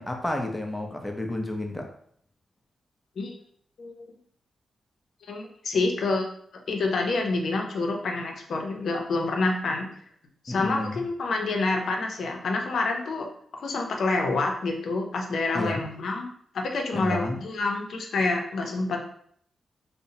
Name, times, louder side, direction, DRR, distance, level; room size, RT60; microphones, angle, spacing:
voice 1, 0.0-1.9 10.5-11.0 15.5-15.8 16.9-17.4, left 1 dB, 15° left, 0.5 m, -31 dB
voice 2, 5.3-6.3 6.7-9.9 10.4-13.3 13.6-19.0, left 3 dB, 70° left, 0.5 m, -27 dB
2.7 x 2.0 x 2.7 m
cardioid pair, 65°, 0 cm